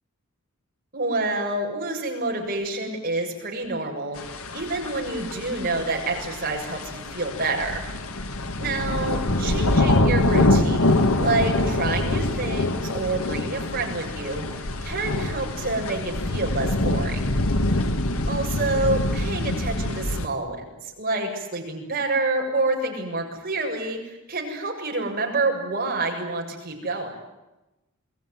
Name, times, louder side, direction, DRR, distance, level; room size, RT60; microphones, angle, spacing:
voice 1, 0.9-7.9 8.6-17.4 18.3-27.1, right 2 dB, 45° right, 1 dB, 7.4 m, -28 dB
sound 1, 4.2-20.3, left 1 dB, 85° left, 1.9 m, -25 dB
28.5 x 21.0 x 9.6 m, 0.99 s
head